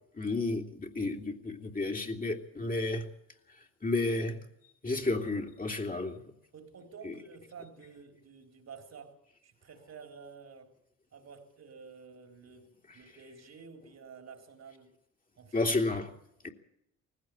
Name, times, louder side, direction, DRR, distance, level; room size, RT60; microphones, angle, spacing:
voice 1, 0.1-3.0 3.8-4.4 4.8-6.2 7.0-7.1 15.5-16.1 16.4-16.5, left 2 dB, 25° left, 2 dB, 2.9 m, -31 dB
voice 2, 6.5-9.2 9.4-10.7 11.1-14.9 15.4-15.8, right 5 dB, 55° right, 4 dB, 3.9 m, -51 dB
19.0 x 16.0 x 8.6 m, 0.77 s
supercardioid pair, 55°, 32 cm